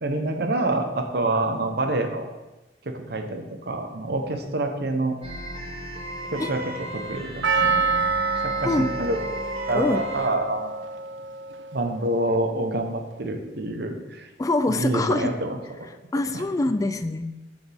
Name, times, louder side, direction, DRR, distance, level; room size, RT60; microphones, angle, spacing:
voice 1, 0.0-2.3 2.9-5.1 6.3-6.6 6.9-7.9 8.4-9.2 9.7-11.0 11.7-14.3 14.7-15.6 16.3-16.4, right 2 dB, 60° right, 5 dB, 0.9 m, -27 dB
sound 1, 5.2-10.3, right 1 dB, 30° right, 0.9 m, -35 dB
Percussion, 7.4-11.8 12.0-12.1, right 4 dB, 75° right, 0.5 m, -27 dB
voice 2, 14.4-15.4 16.1-17.3, left 2 dB, 20° left, 10 dB, 0.3 m, -24 dB
10.0 x 5.0 x 3.4 m, 1.1 s
head